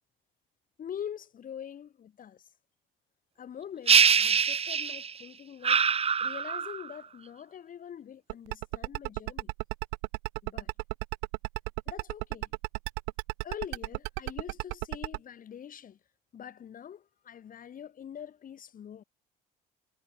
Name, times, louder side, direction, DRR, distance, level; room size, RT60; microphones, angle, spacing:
voice 1, 0.8-2.5 3.4-5.8 6.2-9.5 10.4-10.7 11.9-12.5 13.4-16.0 16.3-19.0, left 9 dB, 50° left, 5.1 m, -44 dB
sound 1, 3.9-5.2 5.6-6.9, right 6 dB, 35° right, 1.5 m, -24 dB
sound 2, 8.3-15.2, right 40 dB or more, 90° right, 1.9 m, -33 dB
supercardioid pair, 85°, 18 cm